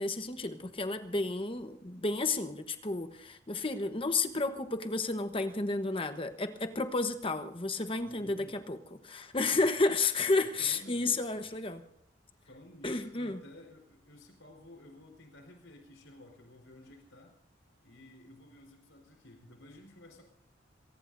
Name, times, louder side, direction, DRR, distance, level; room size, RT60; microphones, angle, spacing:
voice 1, 0.0-11.8 12.8-13.4, left 3 dB, 30° left, 8 dB, 1.1 m, -32 dB
voice 2, 8.0-8.6 9.3-9.7 10.3-11.5 12.4-17.3 17.8-20.2, left 1 dB, 85° left, 2 dB, 4.2 m, -53 dB
26.5 x 18.5 x 2.7 m, 0.73 s
head